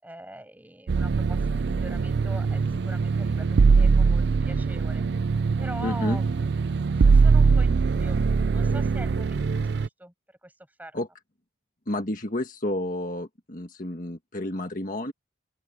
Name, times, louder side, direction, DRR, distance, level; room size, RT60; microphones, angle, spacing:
voice 1, 0.0-5.0 5.6-6.5 7.0-10.5 10.8-11.0, right 1 dB, 10° right, 7.4 m, -43 dB
sound 1, 0.9-9.9, right 4 dB, 55° right, 0.4 m, -22 dB
voice 2, 5.8-6.2 10.9-11.1 11.9-15.1, left 1 dB, 40° left, 1.7 m, -30 dB
open air
head